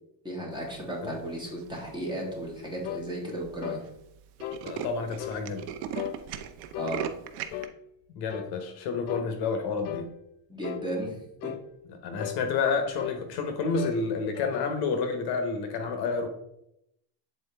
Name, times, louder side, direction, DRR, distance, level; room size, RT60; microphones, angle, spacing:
voice 1, 0.2-3.9 6.8-7.1 10.5-11.5, right 1 dB, 10° right, -3 dB, 1.4 m, -35 dB
Tools, 1.6-2.0 2.6-2.7 3.0-3.1 3.3-3.5 3.8-3.9 4.2-7.7, right 9 dB, 80° right, 0.8 m, -37 dB
sound 1, 2.8-3.1 3.6-3.9 4.4-4.6 5.2-5.4 5.9-6.2 6.7-7.0 7.5-7.8 8.3-8.5 9.1-9.3 9.8-10.1 10.6-10.9 11.4-11.7 12.2-12.4 13.0-13.2 13.8-14.0 14.3-14.8, left 12 dB, 85° left, 0.6 m, -36 dB
voice 2, 4.6-5.7 8.1-10.1 12.0-16.3, left 4 dB, 55° left, 6 dB, 1.0 m, -29 dB
7.9 x 4.1 x 3.3 m, 0.80 s
cardioid pair, 155°, 48 cm